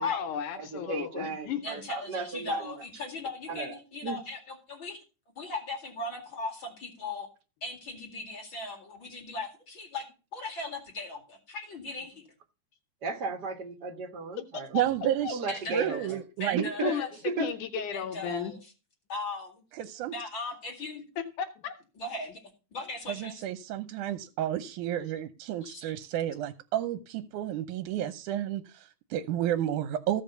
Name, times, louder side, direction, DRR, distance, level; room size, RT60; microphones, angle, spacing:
voice 1, 0.0-1.6 14.5-14.6 15.2-15.3 16.8-17.1 17.4-18.5 21.2-21.7, left 9 dB, 80° left, 2.4 m, -34 dB
voice 2, 0.5-2.8 3.5-3.7 4.0-4.2 13.0-14.8 15.3-16.2 16.5-17.0 17.2-17.5, right 4 dB, 40° right, 1.7 m, -34 dB
voice 3, 1.6-5.0 5.4-7.3 7.6-10.1 10.3-12.2 15.5-16.1 16.4-17.1 17.9-18.6 19.1-19.5 20.1-21.0 22.0-22.4 22.7-23.4 25.6-25.8, left 2 dB, 40° left, 2.7 m, -38 dB
voice 4, 14.7-15.4 15.7-16.7 19.7-20.1 23.1-30.2, right 11 dB, 80° right, 2.1 m, -31 dB
15.0 x 5.2 x 6.8 m
omnidirectional pair, 3.6 m